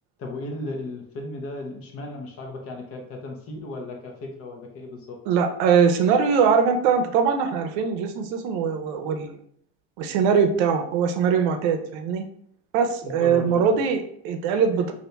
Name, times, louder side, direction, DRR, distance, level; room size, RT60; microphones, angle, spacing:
voice 1, 0.2-5.2 13.0-13.7, left 2 dB, 45° left, 2 dB, 0.8 m, -35 dB
voice 2, 5.3-9.4 10.0-12.2 12.7-14.9, right 6 dB, 75° right, 6 dB, 0.6 m, -22 dB
2.7 x 2.5 x 3.3 m, 0.65 s
supercardioid pair, 120°, 32 cm